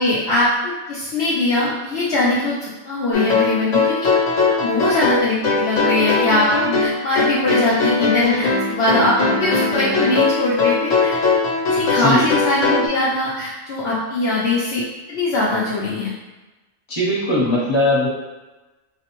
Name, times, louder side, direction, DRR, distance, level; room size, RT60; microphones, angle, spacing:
voice 1, 0.0-4.1 4.6-11.2 11.7-14.8 15.1-16.1, left 2 dB, 65° left, -7 dB, 0.8 m, -21 dB
sound 1, 3.1-12.9, left 3 dB, 90° left, 1.2 m, -19 dB
voice 2, 11.8-12.2 16.9-18.1, left 1 dB, 25° left, -6 dB, 0.9 m, -19 dB
4.1 x 2.1 x 2.9 m, 1.1 s
omnidirectional pair, 1.3 m